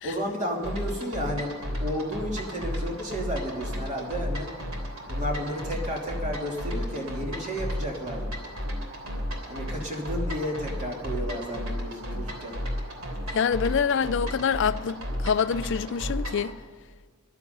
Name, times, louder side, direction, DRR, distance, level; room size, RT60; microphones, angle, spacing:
voice 1, 0.0-4.5 5.1-8.2 9.5-12.6, equal, 35° right, 2.9 m, -32 dB
sound 1, 0.6-16.5, equal, 70° right, 3.2 m, -33 dB
voice 2, 13.3-15.0 15.2-16.5, left 6 dB, 55° left, 0.4 m, -25 dB
14.0 x 12.0 x 5.4 m
head